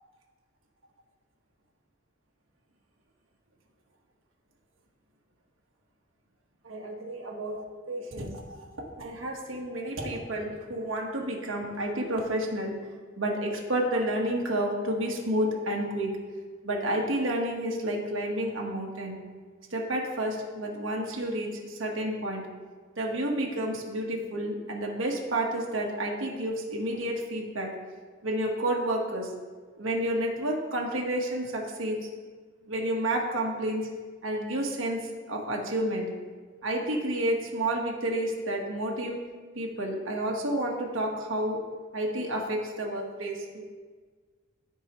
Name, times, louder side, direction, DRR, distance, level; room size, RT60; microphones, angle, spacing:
voice 1, 6.6-8.6 9.0-12.8 13.2-16.1 16.6-19.2 19.7-22.5 23.0-27.7 28.2-29.3 29.8-32.1 32.6-33.9 34.2-36.1 36.6-39.2 39.5-41.6 41.9-43.6, right 1 dB, 75° right, -1 dB, 1.4 m, -30 dB
13.5 x 4.7 x 3.1 m, 1.5 s
head